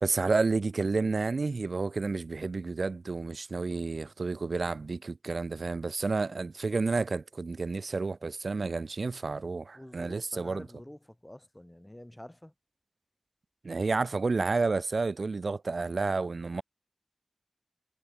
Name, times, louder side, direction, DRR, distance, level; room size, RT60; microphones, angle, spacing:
voice 1, 0.0-10.7 13.6-16.6, right 3 dB, 80° right, 1.1 m, -30 dB
voice 2, 9.7-12.5, left 1 dB, 15° left, 7.0 m, -48 dB
wide cardioid pair, 70°, 0 cm